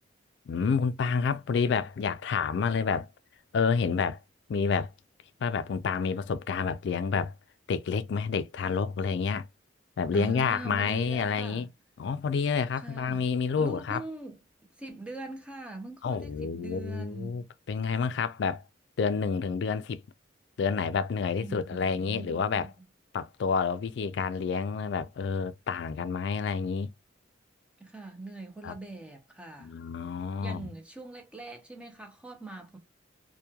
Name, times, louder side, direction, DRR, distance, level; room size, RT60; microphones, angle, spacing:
voice 1, 0.5-3.1 3.5-4.2 4.5-4.9 5.4-7.3 7.7-9.5 10.0-11.7 12.0-14.0 16.0-18.6 19.0-20.0 20.6-22.7 23.1-26.9 28.6-28.7 29.6-30.7, left 5 dB, 60° left, 0.3 m, -29 dB
voice 2, 10.1-11.7 12.7-13.3 13.6-14.4 14.8-17.4 21.4-22.9 27.8-29.7 30.4-32.8, right 2 dB, 5° right, 0.5 m, -42 dB
2.9 x 2.2 x 2.2 m
head